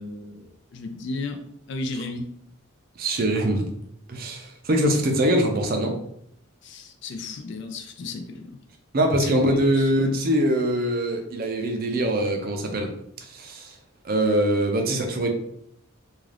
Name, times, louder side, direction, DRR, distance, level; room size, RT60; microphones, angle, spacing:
voice 1, 0.0-2.3 6.6-8.6 9.2-9.9, left 2 dB, 55° left, 6 dB, 0.3 m, -33 dB
voice 2, 3.0-3.7 4.1-6.0 8.9-12.9 13.2-13.7 14.0-15.3, right 1 dB, 45° right, 3 dB, 0.4 m, -23 dB
2.4 x 2.4 x 3.2 m, 0.71 s
head